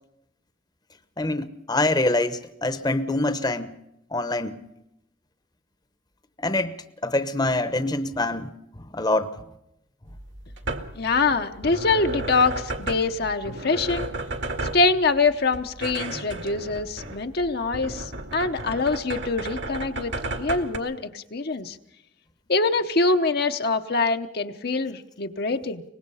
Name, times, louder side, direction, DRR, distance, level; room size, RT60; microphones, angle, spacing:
voice 1, 1.2-3.7 4.1-4.5 6.4-6.7 7.0-8.5 8.9-9.3, left 2 dB, 20° left, 11 dB, 1.0 m, -25 dB
sound 1, 10.1-20.8, right 2 dB, 65° right, 2.0 m, -34 dB
voice 2, 11.0-14.1 14.7-21.8 22.5-25.8, left 3 dB, 55° left, 6 dB, 0.9 m, -24 dB
24.0 x 19.5 x 5.6 m, 0.83 s
head